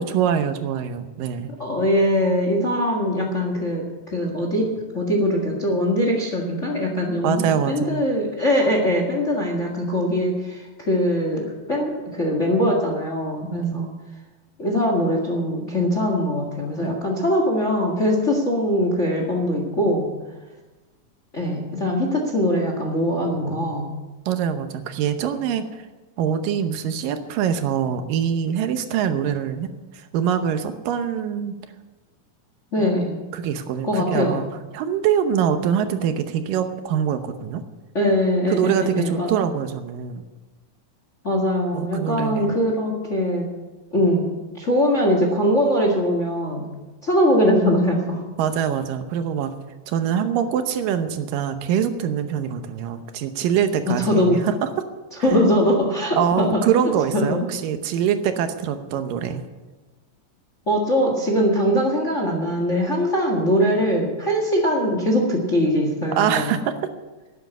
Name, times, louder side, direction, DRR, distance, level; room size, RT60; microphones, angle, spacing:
voice 1, 0.0-1.5 7.2-8.0 13.4-13.8 16.8-16.9 24.3-25.9 26.2-29.7 29.9-31.6 32.8-32.9 33.3-34.4 34.7-37.6 38.5-40.3 41.7-42.6 48.4-49.5 49.9-54.7 56.2-59.5 66.2-66.9, right 8 dB, 80° right, 8 dB, 2.6 m, -24 dB
voice 2, 1.6-13.9 14.6-20.1 21.3-23.9 32.7-33.2 33.8-34.4 37.9-39.3 41.2-43.5 43.9-46.7 47.0-48.2 53.9-54.4 55.2-56.6 57.1-57.4 60.7-66.5, equal, 30° left, 1 dB, 1.3 m, -22 dB
12.0 x 10.0 x 8.1 m, 1.2 s
omnidirectional pair, 4.0 m